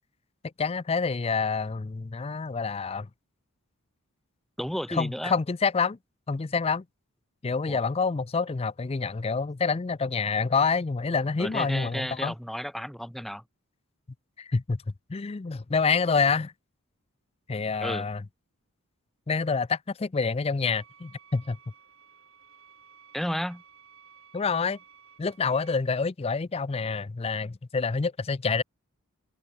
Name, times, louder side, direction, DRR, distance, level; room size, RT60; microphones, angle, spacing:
voice 1, 0.6-3.1 4.9-6.0 6.3-6.8 7.4-12.3 14.4-14.8 15.1-16.5 17.5-18.2 19.3-21.6 24.3-24.8 25.2-28.6, left 4 dB, 25° left, 0.4 m, -27 dB
voice 2, 4.6-5.3 7.7-7.8 11.4-13.4 17.8-18.1 23.1-23.6, equal, ahead, 0.8 m, -32 dB
sound 1, 20.6-25.7, right 7 dB, 60° right, 5.3 m, -55 dB
head